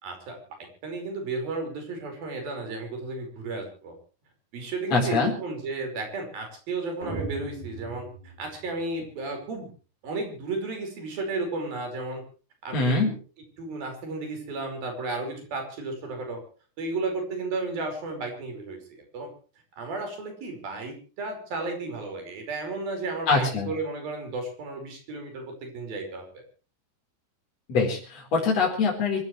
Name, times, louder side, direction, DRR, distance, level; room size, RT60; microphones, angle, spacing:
voice 1, 0.0-4.0 4.5-9.7 10.0-12.2 12.6-13.1 13.6-16.4 16.8-19.3 19.8-26.3, right 3 dB, 90° right, 4 dB, 7.1 m, -33 dB
voice 2, 4.9-5.3 12.7-13.1 23.3-23.7 27.7-29.2, left 4 dB, 45° left, -2 dB, 5.6 m, -23 dB
sound 1, 7.0-9.1, right 2 dB, 60° right, 8.5 m, -38 dB
25.5 x 16.0 x 3.3 m, 0.37 s
omnidirectional pair, 4.0 m